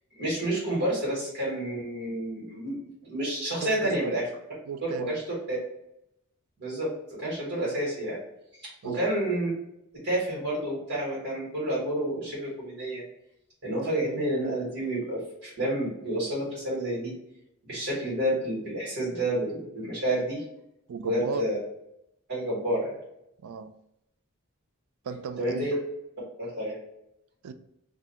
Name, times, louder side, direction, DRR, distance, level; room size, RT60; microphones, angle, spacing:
voice 1, 0.2-2.7 3.0-4.2 4.8-5.2 5.5-5.6 6.6-6.9 7.2-8.2 8.8-9.5 10.0-13.0 13.6-17.1 17.6-20.4 21.0-21.6 22.3-23.0 25.4-25.7 26.4-26.7, right 1 dB, 50° right, -6 dB, 1.4 m, -29 dB
voice 2, 3.6-4.0 4.7-5.2 8.8-9.0 20.9-21.4 23.4-23.7 25.0-25.7 27.4-27.5, right 5 dB, 85° right, 9 dB, 0.4 m, -35 dB
2.7 x 2.6 x 4.2 m, 0.81 s
head